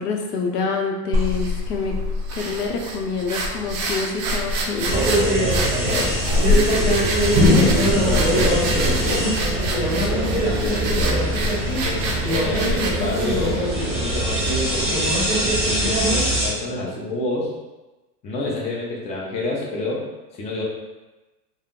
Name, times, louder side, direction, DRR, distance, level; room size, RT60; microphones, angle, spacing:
voice 1, 0.0-2.0 2.3-5.0, left 4 dB, 85° left, 1 dB, 0.6 m, -26 dB
sound 1, 1.1-14.6, equal, 40° right, 0.5 m, -26 dB
sound 2, 4.9-16.5, equal, 15° right, 1.2 m, -21 dB
voice 2, 5.8-7.6 7.9-9.4 10.1-11.2 11.8-13.7 14.0-15.1 15.7-17.5 18.2-20.0 20.3-20.6, left 2 dB, 15° left, -3 dB, 0.4 m, -28 dB
2.2 x 2.0 x 3.6 m, 1.1 s
hypercardioid pair, 105°, 47 cm